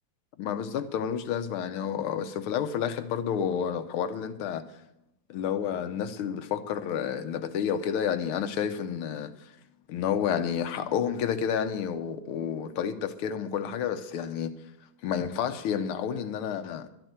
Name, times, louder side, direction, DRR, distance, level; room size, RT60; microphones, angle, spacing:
voice 1, 0.4-4.6 5.3-9.3 9.9-14.5 15.0-16.9, left 8 dB, 90° left, 1.8 m, -30 dB
12.0 x 8.9 x 8.0 m
omnidirectional pair, 2.3 m